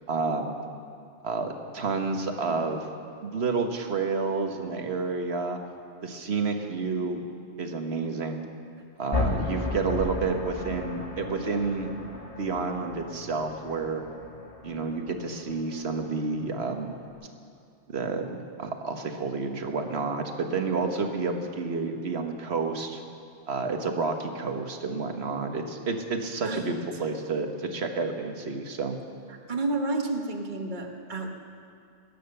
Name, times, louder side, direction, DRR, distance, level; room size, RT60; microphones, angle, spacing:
voice 1, 0.1-0.5 1.2-2.9 3.2-5.6 6.0-7.2 7.6-8.4 9.0-11.9 12.4-14.0 14.6-16.9 17.9-23.0 23.5-29.0, right 4 dB, 65° right, 5 dB, 1.5 m, -30 dB
sound 1, 9.1-17.1, left 3 dB, 30° left, 1.6 m, -35 dB
voice 2, 26.4-26.8 29.3-31.3, right 2 dB, 45° right, 3 dB, 1.4 m, -30 dB
20.0 x 10.0 x 6.7 m, 2.5 s
omnidirectional pair, 1.2 m